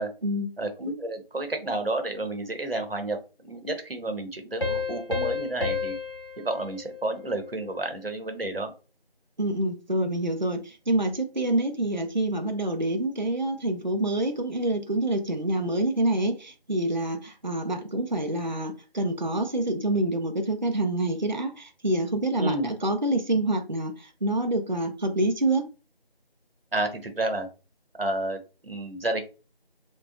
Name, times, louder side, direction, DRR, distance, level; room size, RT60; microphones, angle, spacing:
voice 1, 0.6-3.2 3.5-6.0 6.4-8.7 22.4-22.7 26.7-27.5 28.0-29.2, right 2 dB, 70° right, 6 dB, 0.9 m, -30 dB
sound 1, 4.6-7.9, left 4 dB, 60° left, 0.8 m, -32 dB
voice 2, 9.4-25.7, right 1 dB, 50° right, 6 dB, 0.4 m, -27 dB
2.7 x 2.2 x 2.4 m, 0.32 s
figure-of-eight pair, 175°, 30 cm